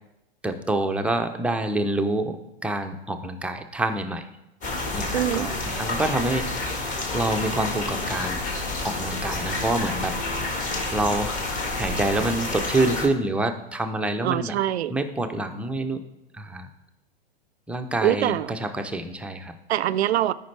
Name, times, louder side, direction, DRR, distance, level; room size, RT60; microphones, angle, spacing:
voice 1, 0.4-4.3 4.9-6.5 6.8-8.4 8.8-10.2 10.9-11.4 11.7-14.6 14.9-16.0 16.3-16.7 17.7-19.5, right 2 dB, 5° right, 5 dB, 0.5 m, -27 dB
sound 1, 4.6-13.1, left 2 dB, 25° left, 1.6 m, -29 dB
voice 2, 5.1-5.5 14.2-14.9 18.0-18.5 19.7-20.3, right 12 dB, 80° right, 18 dB, 0.5 m, -23 dB
13.0 x 5.2 x 3.2 m, 0.91 s
hypercardioid pair, 115°, 31 cm